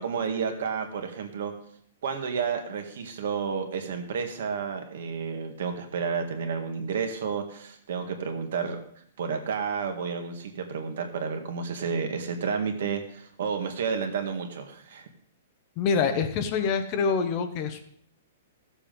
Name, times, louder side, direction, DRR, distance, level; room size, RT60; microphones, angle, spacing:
voice 1, 0.0-1.5 2.0-8.8 9.2-15.1, right 6 dB, 60° right, 5 dB, 1.9 m, -31 dB
voice 2, 15.8-17.9, left 5 dB, 25° left, 8 dB, 0.8 m, -26 dB
14.5 x 7.3 x 5.3 m, 0.66 s
hypercardioid pair, 175°, 0 cm